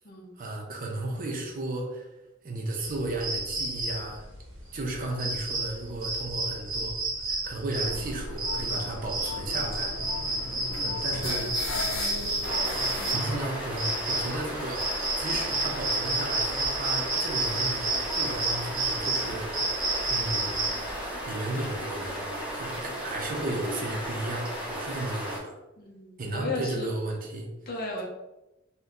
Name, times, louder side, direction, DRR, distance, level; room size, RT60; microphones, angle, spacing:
voice 1, 0.4-2.1 2.4-4.2 4.7-6.9 7.3-9.9 10.4-12.3 12.8-14.8 15.2-19.6 20.1-20.6 21.3-25.6 26.2-27.5, right 2 dB, 45° right, 1 dB, 0.6 m, -34 dB
sound 1, 2.8-21.0, right 2 dB, 80° right, 0.8 m, -31 dB
sound 2, 7.8-13.1, left 2 dB, 90° left, 0.6 m, -36 dB
voice 2, 10.5-10.8 25.8-26.9 27.7-28.0, left 2 dB, 50° left, 0 dB, 0.6 m, -35 dB
sound 3, 12.4-25.4, equal, 5° right, 0.7 m, -35 dB
2.7 x 2.2 x 3.6 m, 0.96 s
head